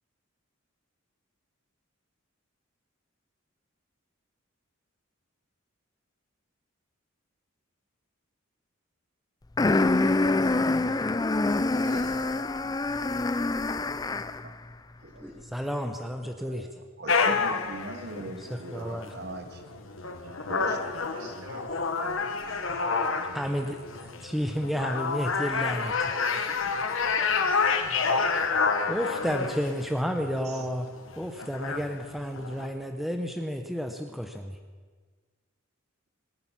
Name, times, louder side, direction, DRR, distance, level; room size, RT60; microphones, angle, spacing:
sound 1, 9.6-14.5, left 2 dB, 20° left, 0.4 m, -25 dB
voice 1, 9.8-10.8 11.7-12.3 12.9-13.2 15.1-15.7 16.4-16.7 17.8-18.9 20.0-22.6 24.3-24.4, equal, 75° right, -3 dB, 6.5 m, -46 dB
voice 2, 15.2-16.7 18.7-19.1 23.3-23.8 24.2-25.9 28.9-30.9 31.2-34.6, equal, ahead, 4 dB, 0.8 m, -31 dB
voice 3, 17.0-19.7 20.5-20.9 24.6-24.7 26.6-26.7 30.4-30.7, right 2 dB, 50° right, 7 dB, 1.4 m, -41 dB
sound 2, 17.1-32.7, left 4 dB, 70° left, 1.2 m, -29 dB
25.5 x 8.8 x 5.8 m, 1.5 s
head